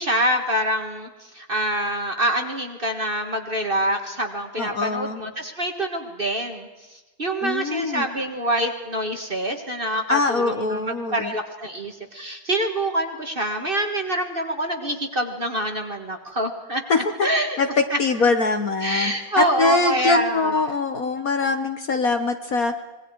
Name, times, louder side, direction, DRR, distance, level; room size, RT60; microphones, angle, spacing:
voice 1, 0.0-16.8 17.2-17.6 17.9-18.0 18.8-20.8, right 1 dB, 30° right, 4 dB, 1.7 m, -26 dB
voice 2, 4.6-5.2 7.4-8.1 10.1-11.3 16.9-17.0 17.6-22.8, left 4 dB, 50° left, 7 dB, 1.6 m, -23 dB
26.0 x 21.5 x 4.8 m, 1.2 s
omnidirectional pair, 2.2 m